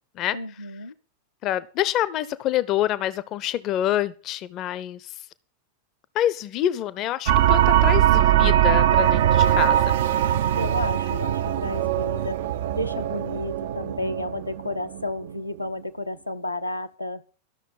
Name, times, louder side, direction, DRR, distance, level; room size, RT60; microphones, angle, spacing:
voice 1, 0.3-0.9 10.5-12.4 12.7-17.2, left 1 dB, 85° left, 6 dB, 1.0 m, -32 dB
voice 2, 1.4-5.1 6.1-9.8, left 12 dB, 35° left, 17 dB, 0.7 m, -26 dB
sound 1, 7.3-15.3, right 11 dB, 55° right, 0.6 m, -21 dB
13.0 x 6.6 x 8.4 m, 0.37 s
figure-of-eight pair, 90°, 0 cm